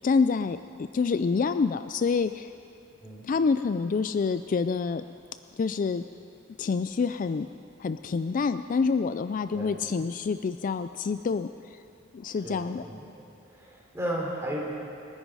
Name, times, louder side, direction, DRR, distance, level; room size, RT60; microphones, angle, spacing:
voice 1, 0.0-0.6 0.9-2.5 3.2-5.0 5.5-6.0 6.6-7.5 7.8-11.5 12.1-12.8, left 5 dB, 40° left, 11 dB, 0.3 m, -27 dB
voice 2, 12.4-14.6, equal, 15° right, -3 dB, 3.3 m, -35 dB
28.0 x 10.5 x 4.8 m, 2.6 s
head